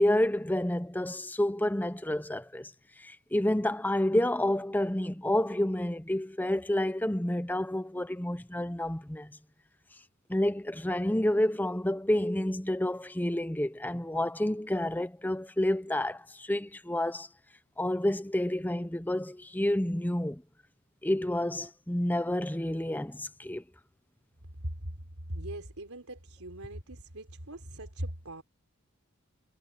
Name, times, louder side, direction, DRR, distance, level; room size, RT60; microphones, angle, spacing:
voice 1, 0.0-2.7 3.0-9.3 10.3-17.3 17.8-20.4 21.0-23.6, left 1 dB, 10° left, 0.7 m, -29 dB
voice 2, 25.3-28.4, right 1 dB, 75° right, 4.1 m, -40 dB
head